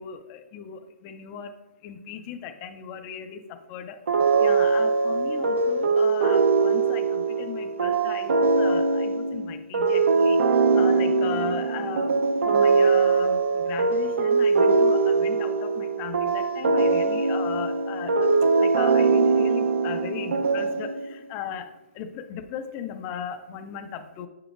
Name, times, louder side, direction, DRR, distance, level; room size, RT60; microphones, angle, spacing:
voice 1, 0.0-1.5 1.8-4.0 4.4-12.2 12.4-18.3 18.6-21.7 21.9-24.3, left 8 dB, 15° left, 7 dB, 0.3 m, -37 dB
sound 1, 4.1-21.2, right 4 dB, 65° right, 0.6 m, -22 dB
7.5 x 7.0 x 2.4 m, 1.0 s
hypercardioid pair, 175°, 7 cm